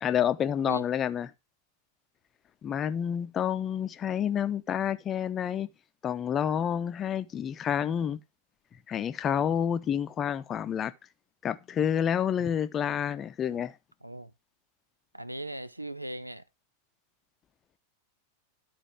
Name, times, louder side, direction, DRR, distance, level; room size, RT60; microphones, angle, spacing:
voice 1, 0.0-1.3 2.6-5.7 6.0-8.2 8.9-10.9 11.4-13.7, left 9 dB, 25° left, 0.7 m, -29 dB
voice 2, 14.0-14.3 15.1-16.4, right 1 dB, 85° right, 0.5 m, -38 dB
12.5 x 4.4 x 4.5 m
figure-of-eight pair, 90°, 0 cm